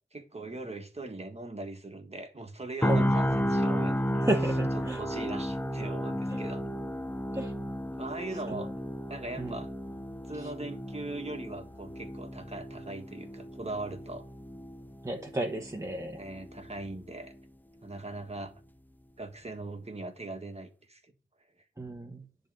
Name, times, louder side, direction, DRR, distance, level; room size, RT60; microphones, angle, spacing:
voice 1, 0.1-4.1 4.7-6.6 8.0-8.7 9.1-9.7 10.3-14.2 16.2-17.3 17.8-18.5 19.2-21.0, right 2 dB, 30° right, 1.6 m, -40 dB
sound 1, 2.8-16.8 17.2-17.4, equal, 10° left, 0.5 m, -33 dB
voice 2, 4.2-5.0 6.3-6.4 7.3-7.5 8.5-8.6 9.4-9.6 10.4-10.5 15.0-16.2 21.8-22.3, right 1 dB, 15° right, 1.1 m, -33 dB
10.0 x 3.9 x 7.5 m
wide cardioid pair, 80°, 21 cm